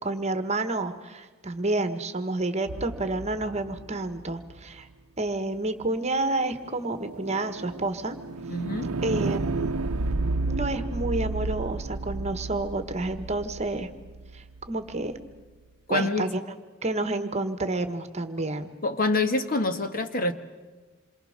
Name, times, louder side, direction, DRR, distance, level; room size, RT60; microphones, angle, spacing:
voice 1, 0.0-4.9 5.2-8.2 9.0-9.7 10.5-13.9 14.3-15.2 15.9-16.4 16.8-18.7, right 2 dB, 30° right, 9 dB, 1.4 m, -29 dB
sound 1, 2.7-4.8 6.7-14.7, right 3 dB, 85° right, 0.7 m, -32 dB
voice 2, 8.5-8.9 15.9-16.3 18.8-20.3, left 2 dB, 40° left, 7 dB, 1.5 m, -26 dB
27.5 x 23.5 x 6.6 m, 1.3 s
head